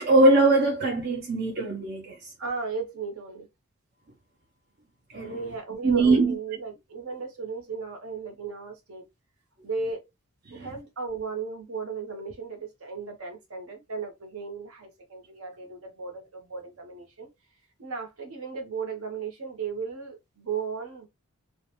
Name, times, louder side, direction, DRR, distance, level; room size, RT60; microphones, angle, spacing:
voice 1, 0.0-2.2 5.1-5.3 5.8-6.3 10.5-10.7, right 2 dB, 45° right, 0.5 m, -21 dB
voice 2, 2.4-3.5 5.3-9.0 9.6-10.0 10.5-17.3 17.8-21.1, right 5 dB, 70° right, 0.9 m, -35 dB
2.4 x 2.1 x 2.8 m
head